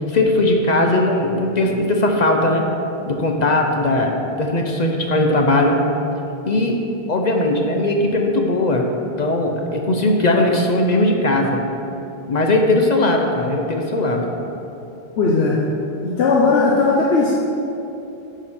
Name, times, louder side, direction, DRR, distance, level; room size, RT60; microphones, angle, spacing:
voice 1, 0.1-2.6 3.1-5.8 6.5-6.8 7.1-8.9 9.2-11.6 12.3-14.3, left 2 dB, 50° left, 2 dB, 0.7 m, -18 dB
voice 2, 15.2-15.6 16.0-17.3, left 4 dB, 85° left, -4 dB, 1.0 m, -17 dB
10.0 x 5.0 x 4.2 m, 2.9 s
omnidirectional pair, 1.1 m